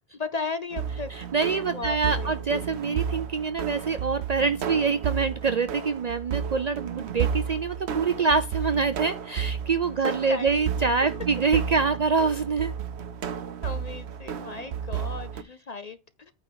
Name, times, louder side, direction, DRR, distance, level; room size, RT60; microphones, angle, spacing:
voice 1, 0.1-1.1 1.4-2.3 10.0-10.5 11.0-11.1 13.6-16.3, left 4 dB, 45° left, 0.6 m, -36 dB
sound 1, 0.7-15.4, right 8 dB, 70° right, 1.0 m, -32 dB
voice 2, 1.3-12.7, right 4 dB, 50° right, 0.5 m, -25 dB
8.9 x 3.6 x 6.7 m
omnidirectional pair, 1.2 m